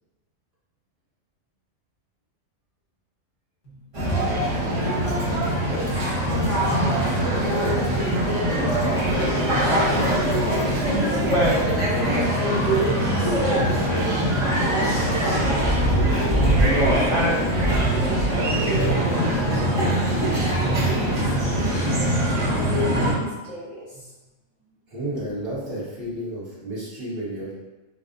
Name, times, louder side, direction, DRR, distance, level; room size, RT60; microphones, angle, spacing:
sound 1, 3.9-23.1, right 1 dB, 35° right, 0.6 m, -22 dB
voice 1, 5.5-10.2 10.5-11.5 12.0-19.9 20.6-24.1, equal, 70° left, -8 dB, 1.5 m, -32 dB
voice 2, 24.9-27.5, right 1 dB, 50° right, -9 dB, 1.4 m, -31 dB
4.6 x 2.1 x 2.5 m, 1.1 s
omnidirectional pair, 1.3 m